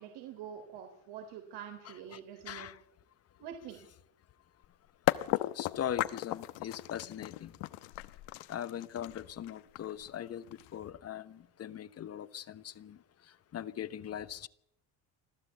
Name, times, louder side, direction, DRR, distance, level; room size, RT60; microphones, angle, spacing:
voice 1, 0.0-2.7 3.4-3.8, right 9 dB, 80° right, 4 dB, 3.8 m, -46 dB
voice 2, 1.8-2.2 2.4-2.8 5.5-7.5 8.5-10.5 10.7-13.0 13.5-14.5, left 10 dB, 35° left, 15 dB, 1.0 m, -40 dB
sound 1, 4.6-4.7 5.1-10.9, left 18 dB, 85° left, 1.1 m, -35 dB
26.0 x 15.0 x 8.3 m, 0.76 s
cardioid pair, 140°, 41 cm